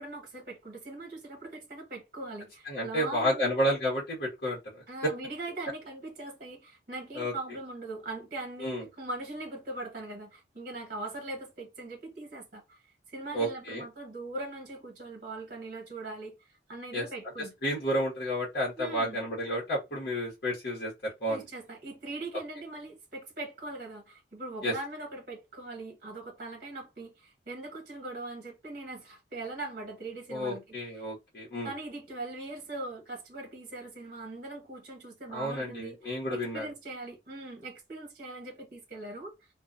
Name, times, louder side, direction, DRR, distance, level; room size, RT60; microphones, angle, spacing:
voice 1, 0.0-3.5 4.9-12.8 13.1-16.4 16.7-17.7 18.8-19.2 21.3-31.0 31.6-39.3, right 2 dB, 50° right, 1.0 m, -41 dB
voice 2, 2.6-4.8 7.1-7.3 8.6-8.8 13.3-13.8 16.9-17.0 17.6-21.4 24.6-24.7 30.3-31.7 35.3-36.7, equal, 60° left, 1.1 m, -31 dB
2.5 x 2.2 x 2.5 m
head